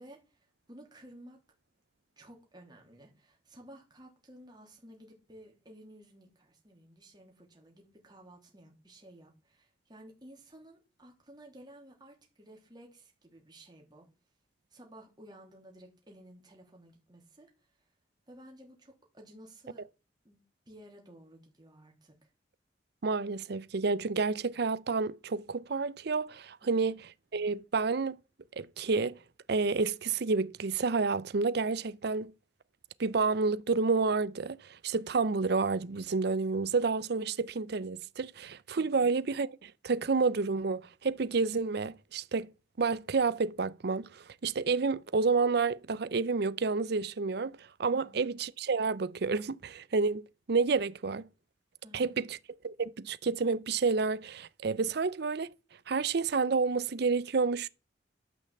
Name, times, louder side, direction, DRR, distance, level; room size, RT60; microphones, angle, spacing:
voice 1, 0.0-1.4 2.2-14.1 14.7-17.7 18.3-19.8 20.2-22.3 26.6-26.9 38.7-39.1 47.9-48.2 51.8-52.3, right 1 dB, 25° right, 3.1 m, -54 dB
voice 2, 23.0-27.0 27.3-28.2 28.6-29.2 29.5-32.3 33.0-42.5 42.8-51.3 51.9-52.4 52.6-55.5 55.9-57.7, right 4 dB, 60° right, 0.6 m, -30 dB
12.0 x 5.8 x 7.1 m
head